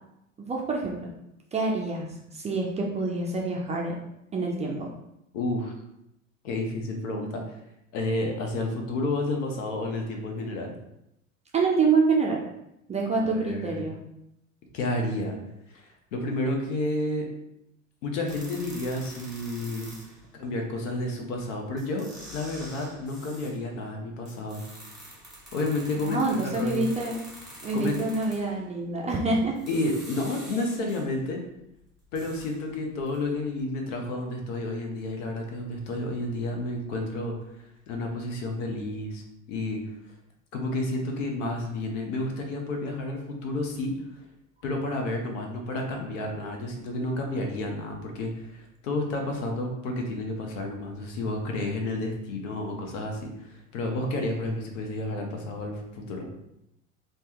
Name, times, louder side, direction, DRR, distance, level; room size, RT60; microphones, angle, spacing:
voice 1, 0.4-1.1 1.5-3.9 4.3-4.9 11.5-12.4 12.9-14.0 26.0-27.2 27.6-29.5, right 3 dB, 20° right, -1 dB, 0.4 m, -26 dB
voice 2, 5.3-5.7 6.4-7.4 7.9-10.7 13.1-13.8 14.7-15.3 15.7-17.3 18.0-19.9 20.4-22.1 22.3-24.6 25.5-26.8 27.7-28.0 29.7-31.4 32.1-37.4 37.9-39.2 39.5-39.8 40.5-43.9 44.6-56.3, left 2 dB, 65° left, 2 dB, 0.8 m, -31 dB
sound 1, 18.3-20.3 21.4-21.5 21.8-23.6 24.3-28.6 29.4-31.2 31.6-33.3 33.6-33.7, equal, ahead, 1.4 m, -46 dB
3.3 x 2.2 x 2.9 m, 0.83 s
figure-of-eight pair, 75°, 40 cm